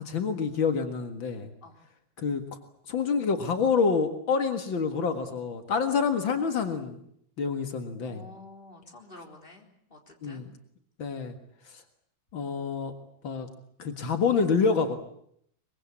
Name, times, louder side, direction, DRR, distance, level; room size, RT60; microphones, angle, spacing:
voice 1, 0.0-1.5 2.2-2.4 2.9-7.0 7.4-8.2 10.2-10.5 11.0-11.4 11.7-11.8 12.3-12.9 13.2-13.5 13.8-15.0, left 5 dB, 80° left, 7 dB, 2.6 m, -27 dB
voice 2, 8.0-10.5, left 2 dB, 25° left, 2 dB, 4.2 m, -49 dB
24.0 x 22.5 x 8.6 m, 0.69 s
omnidirectional pair, 2.1 m